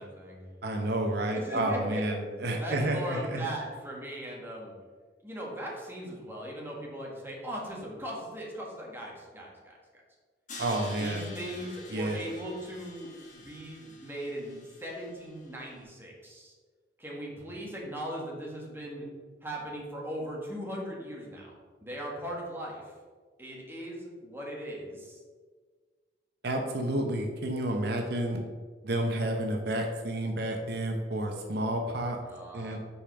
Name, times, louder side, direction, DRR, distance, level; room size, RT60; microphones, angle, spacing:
voice 1, 0.0-0.4 1.3-2.0 2.6-4.7 5.2-9.8 11.0-16.5 17.0-19.0 19.4-21.5 21.8-22.9 23.4-25.2 31.8-32.8, equal, 15° right, -3 dB, 1.6 m, -39 dB
voice 2, 0.6-3.5 10.6-11.4 11.9-12.2 26.4-28.4 28.8-32.2 32.5-32.8, right 1 dB, 65° right, 3 dB, 0.9 m, -30 dB
Crash cymbal, 10.5-15.5, left 3 dB, 45° left, 1.4 m, -47 dB
5.5 x 5.1 x 5.8 m, 1.5 s
head